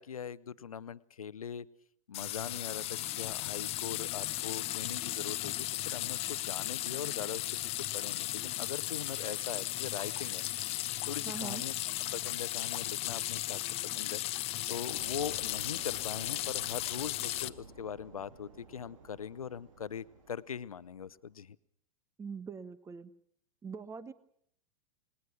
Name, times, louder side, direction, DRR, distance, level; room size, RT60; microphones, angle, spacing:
voice 1, 0.0-1.7 2.1-7.5 7.7-10.4 11.1-11.8 12.1-14.2 14.7-21.6, left 7 dB, 80° left, 17 dB, 0.8 m, -41 dB
sound 1, 2.1-17.5, left 15 dB, 35° left, 0.9 m, -36 dB
voice 2, 11.2-11.6 22.2-23.1 23.6-24.1, right 5 dB, 15° right, 17 dB, 1.1 m, -42 dB
sound 2, 14.9-21.2, right 4 dB, 65° right, 3.5 m, -53 dB
28.5 x 20.0 x 6.1 m, 0.65 s
figure-of-eight pair, 95°, 18 cm